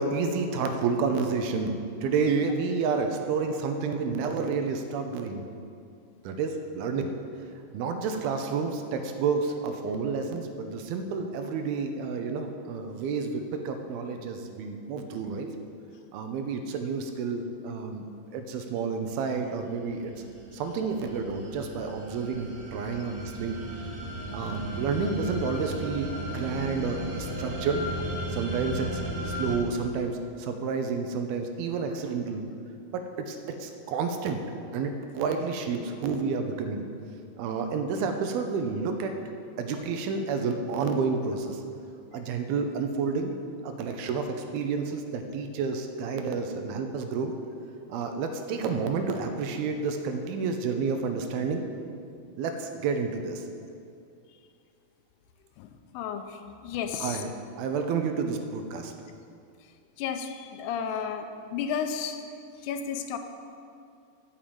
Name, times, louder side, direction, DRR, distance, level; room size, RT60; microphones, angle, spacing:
voice 1, 0.0-5.4 6.2-7.1 7.7-15.5 16.1-18.1 18.3-20.1 20.5-23.6 24.3-27.9 28.3-32.4 32.9-34.4 34.7-36.9 37.4-39.1 39.6-41.6 42.1-43.3 43.6-47.3 47.9-51.7 52.4-53.4 57.0-57.3 57.6-58.9, right 5 dB, 80° right, 6 dB, 2.6 m, -30 dB
sound 1, 19.5-29.6, right 1 dB, 45° right, 2.7 m, -36 dB
voice 2, 55.6-57.2 60.0-62.2 62.6-63.2, left 7 dB, 85° left, 7 dB, 2.8 m, -33 dB
9.1 x 7.5 x 8.8 m, 2.5 s
omnidirectional pair, 4.6 m